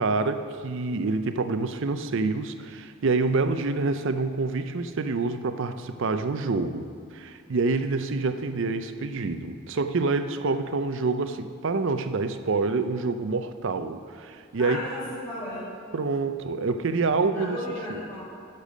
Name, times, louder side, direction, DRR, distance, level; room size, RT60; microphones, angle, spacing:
voice 1, 0.0-14.8 15.9-17.6 17.9-18.0, right 3 dB, 60° right, 10 dB, 0.5 m, -27 dB
voice 2, 14.6-15.7 17.3-18.2, left 1 dB, 15° left, -14 dB, 2.6 m, -34 dB
12.0 x 6.8 x 5.0 m, 2.2 s
head